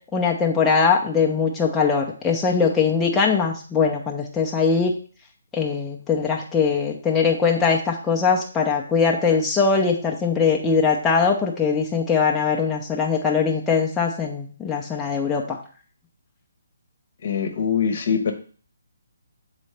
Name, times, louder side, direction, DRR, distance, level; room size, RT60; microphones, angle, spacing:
voice 1, 0.1-4.9 5.5-15.6, left 5 dB, 10° left, -2 dB, 0.8 m, -21 dB
voice 2, 17.2-18.3, left 7 dB, 55° left, 6 dB, 1.0 m, -23 dB
7.3 x 4.1 x 3.3 m, 0.42 s
figure-of-eight pair, 140°, 0 cm